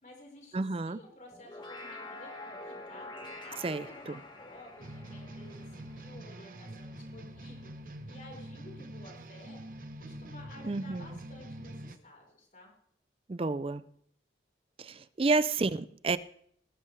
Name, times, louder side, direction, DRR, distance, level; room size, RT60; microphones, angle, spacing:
voice 1, 0.0-12.7, left 1 dB, 45° left, 4.6 m, -53 dB
voice 2, 0.5-1.0 3.6-3.8 10.7-11.0 13.3-13.8 14.8-16.2, right 3 dB, 30° right, 0.4 m, -30 dB
sound 1, 1.3-6.8, left 2 dB, 25° left, 1.7 m, -47 dB
sound 2, 4.8-12.0, right 1 dB, 50° right, 1.0 m, -45 dB
19.0 x 13.0 x 3.3 m
head